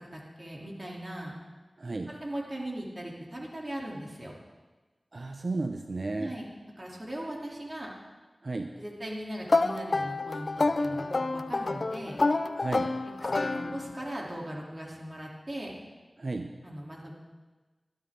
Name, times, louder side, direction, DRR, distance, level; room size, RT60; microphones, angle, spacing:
voice 1, 0.0-1.3 2.1-4.3 6.2-6.5 6.8-7.9 8.8-12.2 13.2-15.7 16.6-17.1, right 1 dB, 40° right, -3 dB, 3.3 m, -39 dB
voice 2, 1.8-2.2 5.1-6.4 8.4-8.7 12.6-13.0 16.2-16.5, right 2 dB, 60° right, 5 dB, 0.8 m, -33 dB
sound 1, 9.5-14.1, left 3 dB, 70° left, 0.6 m, -28 dB
21.0 x 12.5 x 3.8 m, 1.3 s
wide cardioid pair, 50°, 0 cm